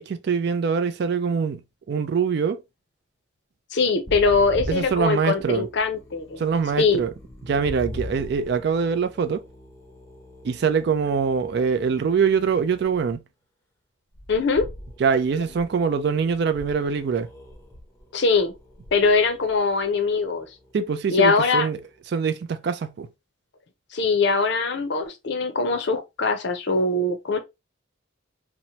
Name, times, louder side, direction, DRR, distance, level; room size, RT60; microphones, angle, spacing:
voice 1, 0.0-2.6 4.7-5.7 6.4-7.1 7.5-9.4 10.4-13.2 15.0-17.3 20.7-21.8 22.1-23.1, right 6 dB, 55° right, 0.3 m, -23 dB
voice 2, 3.7-6.4 6.8-7.0 14.3-14.7 18.1-18.5 18.9-20.5 21.1-21.7 23.9-27.4, left 4 dB, 55° left, 0.5 m, -22 dB
sound 1, 4.1-13.2 14.1-21.7, left 1 dB, 15° left, 0.6 m, -42 dB
2.8 x 2.1 x 2.8 m
head